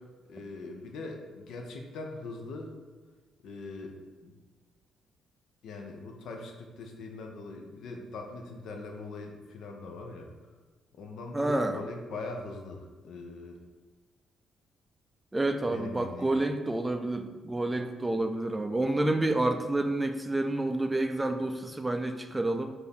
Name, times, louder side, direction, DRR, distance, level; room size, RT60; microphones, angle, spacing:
voice 1, 0.3-2.7 3.4-4.4 5.6-10.3 11.0-13.6 15.7-16.3, left 3 dB, 75° left, 2 dB, 0.6 m, -41 dB
voice 2, 11.3-11.8 15.3-22.7, right 2 dB, 15° right, 6 dB, 0.3 m, -29 dB
4.5 x 2.6 x 3.5 m, 1.3 s
cardioid pair, 90°, 0 cm